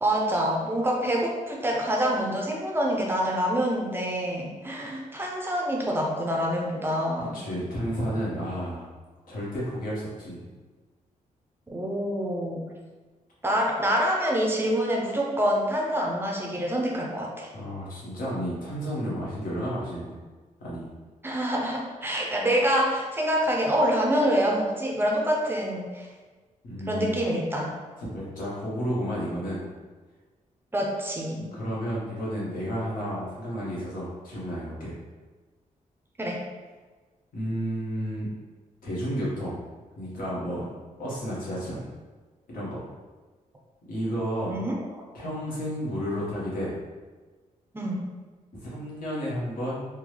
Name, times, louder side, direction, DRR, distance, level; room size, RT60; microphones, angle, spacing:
voice 1, 0.0-7.4 11.7-12.7 13.4-17.5 21.2-26.1 26.9-27.7 30.7-31.5 36.2-36.4 44.5-44.8 47.7-48.0, equal, 15° right, -2 dB, 0.5 m, -26 dB
voice 2, 7.2-8.8 9.3-10.5 17.5-20.2 20.6-20.9 26.6-27.2 28.0-29.6 31.4-34.9 37.3-38.3 38.8-39.6 40.0-40.7 41.0-41.8 42.5-42.9 43.9-44.6 45.1-46.7 48.6-49.9, equal, 85° left, -7 dB, 1.3 m, -32 dB
3.6 x 2.2 x 3.2 m, 1.3 s
wide cardioid pair, 165°, 14 cm